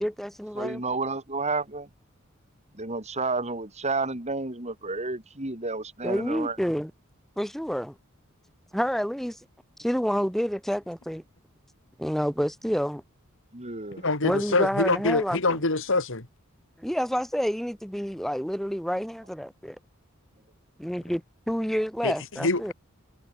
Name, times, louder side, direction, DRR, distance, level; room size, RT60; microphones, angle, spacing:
voice 1, 0.0-0.8 6.0-6.9 7.4-7.9 8.7-9.4 9.8-11.2 12.0-13.0 14.2-15.6 16.8-19.8 20.8-22.7, equal, ahead, 2.8 m, -28 dB
voice 2, 0.6-1.9 2.7-6.6 13.5-14.1, right 3 dB, 30° right, 4.0 m, -31 dB
voice 3, 14.0-16.3 22.0-22.7, left 3 dB, 60° left, 2.9 m, -25 dB
head